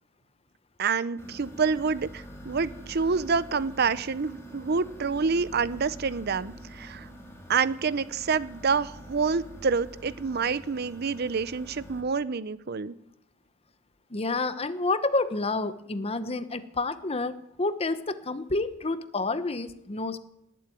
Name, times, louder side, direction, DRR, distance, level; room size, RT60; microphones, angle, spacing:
voice 1, 0.8-7.1 7.5-12.9, right 5 dB, 55° right, 17 dB, 0.6 m, -27 dB
sound 1, 1.2-12.0, equal, 15° left, 3.5 m, -45 dB
voice 2, 14.1-20.2, left 3 dB, 30° left, 12 dB, 0.9 m, -29 dB
19.0 x 7.8 x 9.1 m, 0.80 s
head